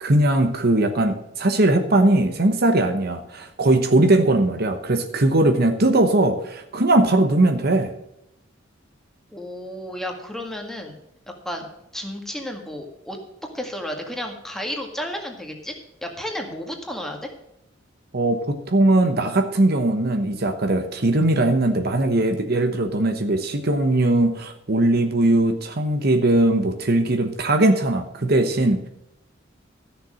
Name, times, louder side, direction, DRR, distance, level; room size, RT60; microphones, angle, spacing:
voice 1, 0.0-7.9 18.1-28.9, right 2 dB, 55° right, 7 dB, 1.1 m, -20 dB
voice 2, 9.3-11.0 11.5-13.2 13.5-15.8 16.0-17.3, equal, ahead, 2 dB, 1.9 m, -32 dB
13.5 x 6.8 x 6.4 m, 0.82 s
head